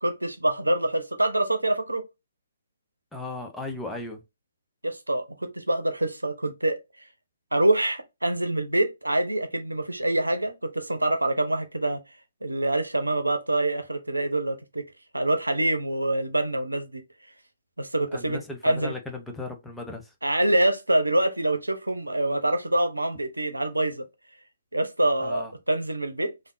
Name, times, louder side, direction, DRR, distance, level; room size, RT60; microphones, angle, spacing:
voice 1, 0.0-2.0 4.8-6.8 7.5-12.0 12.4-14.8 15.1-17.0 17.8-18.9 20.2-24.0 24.7-26.3, right 1 dB, 85° right, 0.7 m, -25 dB
voice 2, 3.1-4.2 18.1-20.1 25.2-25.5, left 2 dB, 5° left, 0.5 m, -36 dB
3.4 x 2.5 x 2.5 m
figure-of-eight pair, 135°, 0 cm